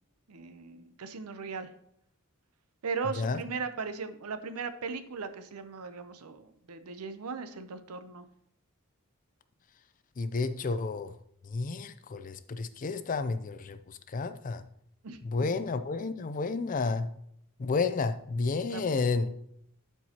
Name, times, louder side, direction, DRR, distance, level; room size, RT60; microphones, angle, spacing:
voice 1, 0.3-1.7 2.8-8.3 15.0-15.2 18.7-19.0, right 5 dB, 85° right, 10 dB, 0.7 m, -38 dB
voice 2, 10.2-11.1 11.4-14.6 15.2-17.1 17.6-19.3, left 4 dB, 35° left, 11 dB, 0.4 m, -31 dB
12.0 x 4.6 x 2.9 m, 0.74 s
head